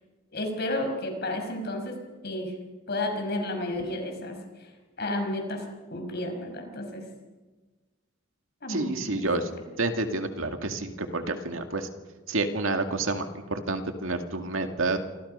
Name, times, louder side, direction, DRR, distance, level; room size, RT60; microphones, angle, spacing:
voice 1, 0.3-1.9 2.2-2.5 2.9-4.3 4.6-4.7 5.0-5.7 5.9-7.0 8.6-9.5, left 1 dB, 55° left, 4 dB, 5.9 m, -32 dB
voice 2, 8.7-9.5 9.8-11.9 12.3-15.0, right 2 dB, 75° right, 6 dB, 2.2 m, -29 dB
27.5 x 24.5 x 5.6 m, 1.3 s
head